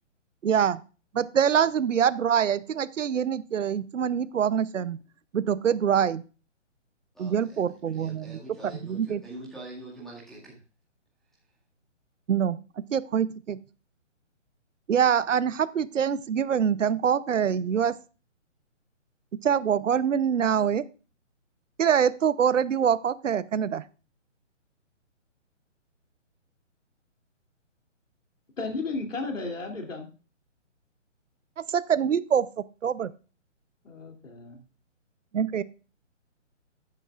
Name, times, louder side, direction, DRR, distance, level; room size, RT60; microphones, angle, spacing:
voice 1, 0.4-0.8 1.1-5.0 5.3-6.2 7.2-9.2 12.3-12.6 12.9-13.6 14.9-17.9 19.4-20.8 21.8-23.8 31.7-32.5 32.8-33.1 35.3-35.6, right 8 dB, 80° right, 17 dB, 0.8 m, -24 dB
voice 2, 7.1-7.6 7.9-10.6, right 1 dB, ahead, -6 dB, 2.0 m, -44 dB
voice 3, 28.6-30.1 33.8-34.6, left 3 dB, 90° left, 3 dB, 3.0 m, -34 dB
13.0 x 9.1 x 2.4 m, 0.34 s
hypercardioid pair, 155°, 37 cm